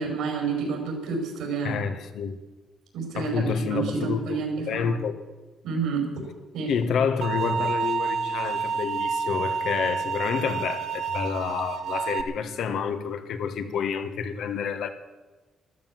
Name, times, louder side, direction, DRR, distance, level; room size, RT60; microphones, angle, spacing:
voice 1, 0.0-1.7 2.9-4.9 5.6-6.3 6.5-6.7, right 5 dB, 85° right, 5.1 m, -29 dB
voice 2, 1.6-2.4 3.1-5.2 6.7-14.9, left 6 dB, 75° left, 1.5 m, -29 dB
sound 1, 7.2-12.2, right 6 dB, 70° right, 1.3 m, -29 dB
13.5 x 13.0 x 7.5 m
cardioid pair, 90°, 0 cm